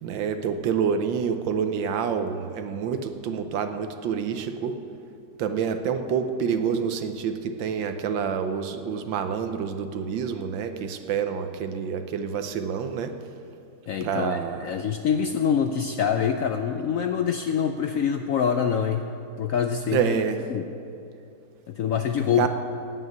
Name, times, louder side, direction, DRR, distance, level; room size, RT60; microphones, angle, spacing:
voice 1, 0.0-4.7 5.4-13.1 14.0-14.7 19.9-20.4 22.4-22.5, right 7 dB, 80° right, 8 dB, 1.5 m, -27 dB
voice 2, 13.9-19.1 19.4-20.2 20.5-20.7 21.7-22.5, left 7 dB, 80° left, 6 dB, 0.7 m, -25 dB
16.5 x 5.7 x 9.5 m, 2.7 s
omnidirectional pair, 2.1 m